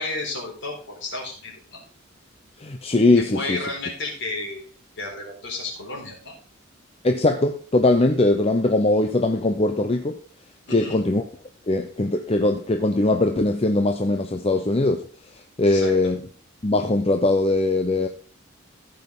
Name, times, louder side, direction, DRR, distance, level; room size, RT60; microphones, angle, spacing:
voice 1, 0.0-1.8 3.1-4.6 5.0-6.4 10.7-11.0 15.6-16.1, left 2 dB, 60° left, 4.3 m, -32 dB
voice 2, 2.6-3.6 7.0-10.2 10.7-11.2 11.7-15.1 15.6-16.2 16.6-18.1, left 2 dB, 30° left, 0.7 m, -21 dB
15.0 x 5.5 x 4.0 m
head